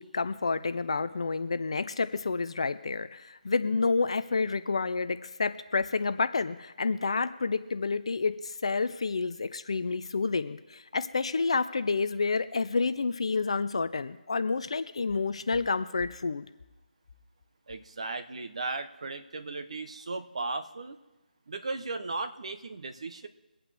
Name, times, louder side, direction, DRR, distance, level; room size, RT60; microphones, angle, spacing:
voice 1, 0.0-16.5, left 4 dB, 35° left, 12 dB, 0.5 m, -29 dB
voice 2, 17.7-21.0 21.5-23.3, right 3 dB, 40° right, 9 dB, 0.9 m, -36 dB
24.0 x 8.7 x 3.4 m, 1.1 s
figure-of-eight pair, 175°, 5 cm